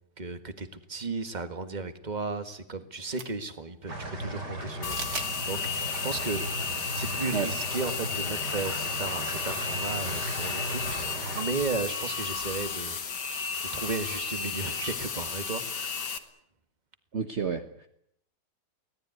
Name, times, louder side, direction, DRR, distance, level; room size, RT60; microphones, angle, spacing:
voice 1, 0.2-3.9 4.2-6.4 6.9-13.2 13.6-16.2, right 3 dB, 25° right, 9 dB, 1.8 m, -35 dB
sound 1, 3.0-3.5 4.9-5.3 5.8-5.9 7.1-7.2 7.5-7.6 8.9-9.2, right 5 dB, 60° right, 2.6 m, -38 dB
sound 2, 3.9-11.4, right 1 dB, 75° right, 6.6 m, -36 dB
sound 3, 4.8-16.2, left 5 dB, 80° left, 2.4 m, -33 dB
voice 2, 17.1-17.9, right 6 dB, 45° right, 7 dB, 1.5 m, -30 dB
24.5 x 18.0 x 9.5 m, 0.72 s
omnidirectional pair, 1.8 m